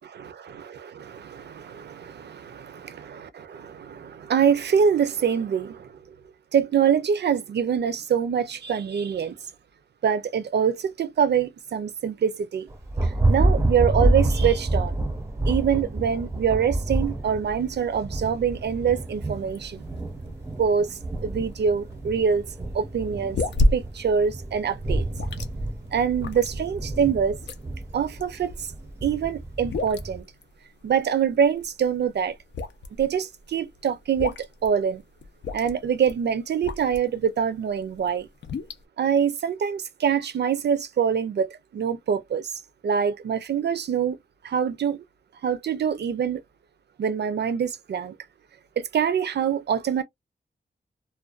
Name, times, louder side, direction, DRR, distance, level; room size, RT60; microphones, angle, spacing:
voice 1, 0.2-2.9 3.5-5.9 6.5-9.4 10.0-12.7 13.3-15.0 15.5-19.8 20.6-20.9 21.2-22.4 22.7-23.4 23.7-25.0 25.9-27.4 27.9-28.5 29.0-30.2 30.8-32.3 33.0-34.4 34.6-35.0 35.5-38.3 39.0-42.5 42.8-44.2 44.4-45.0 45.4-46.4 47.0-48.1 48.8-50.0, right 7 dB, 75° right, 0.4 m, -24 dB
Thunder, 12.7-30.2, right 2 dB, 15° right, 0.5 m, -28 dB
sound 1, 19.1-37.2 37.7-38.8, left 1 dB, 90° left, 0.5 m, -31 dB
2.4 x 2.2 x 2.3 m
wide cardioid pair, 130°, 18 cm